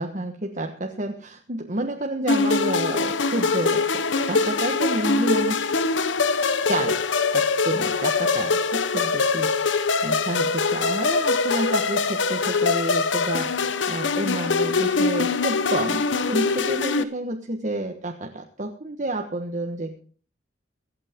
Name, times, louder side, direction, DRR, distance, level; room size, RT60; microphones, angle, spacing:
voice 1, 0.0-5.7 6.7-7.0 7.3-20.0, right 1 dB, 40° right, 3 dB, 1.3 m, -30 dB
sound 1, 2.3-17.0, left 4 dB, 80° left, 1.0 m, -23 dB
24.5 x 8.6 x 3.7 m, 0.43 s
head